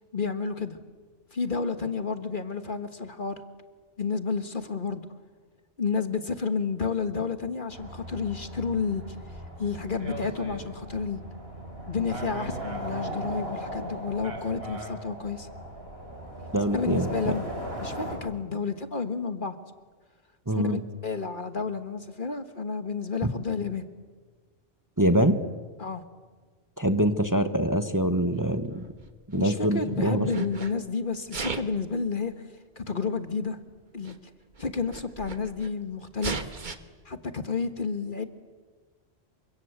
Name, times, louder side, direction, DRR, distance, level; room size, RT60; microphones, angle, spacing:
voice 1, 0.1-0.8 1.3-3.4 4.0-5.1 5.8-9.0 9.6-11.2 11.9-15.5 16.7-17.5 17.8-19.5 20.5-23.8 25.8-26.0 29.3-32.5 32.8-33.6 33.9-34.2 34.6-36.5 37.1-38.2, left 5 dB, 45° left, 9 dB, 1.6 m, -31 dB
sound 1, 7.7-18.2, right 1 dB, 60° right, 5.8 m, -38 dB
voice 2, 16.5-17.3 20.5-20.8 23.2-23.3 25.0-25.4 26.8-28.8 29.3-30.3, right 1 dB, 15° right, 9 dB, 1.2 m, -24 dB
Sneeze, 28.7-29.8 30.2-30.7 31.2-31.8 32.8-32.9 33.8-33.9 34.0-34.1 34.5-35.7 36.2-36.8, right 4 dB, 45° right, 1.6 m, -36 dB
28.5 x 25.0 x 8.1 m, 1.4 s
omnidirectional pair, 1.2 m